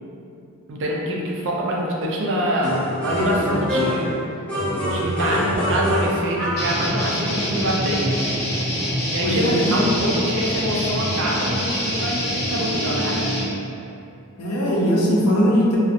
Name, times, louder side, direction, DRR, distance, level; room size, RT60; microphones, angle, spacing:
voice 1, 0.7-4.2 4.7-8.2 9.1-13.3, equal, 60° right, -3 dB, 0.4 m, -25 dB
sound 1, 2.6-4.1 4.5-6.7, equal, 5° left, 0.6 m, -24 dB
sound 2, 6.6-13.4, equal, 50° left, 0.8 m, -25 dB
voice 2, 9.2-9.8 14.4-15.8, equal, 85° left, -4 dB, 0.5 m, -20 dB
2.4 x 2.0 x 2.5 m, 2.6 s
head